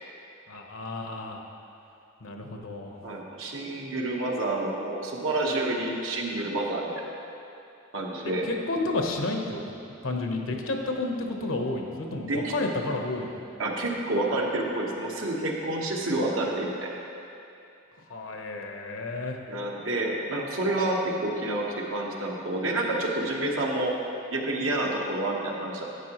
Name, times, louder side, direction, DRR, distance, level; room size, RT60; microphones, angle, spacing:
voice 1, 0.5-1.4 2.2-3.0 8.4-9.8 10.0-13.4 18.1-19.4, left 2 dB, 90° left, 2 dB, 1.0 m, -31 dB
voice 2, 3.0-6.9 7.9-8.4 12.3-12.5 13.6-16.9 19.5-23.9 24.3-25.8, right 2 dB, 80° right, -1 dB, 1.2 m, -29 dB
11.5 x 8.7 x 3.0 m, 2.7 s
head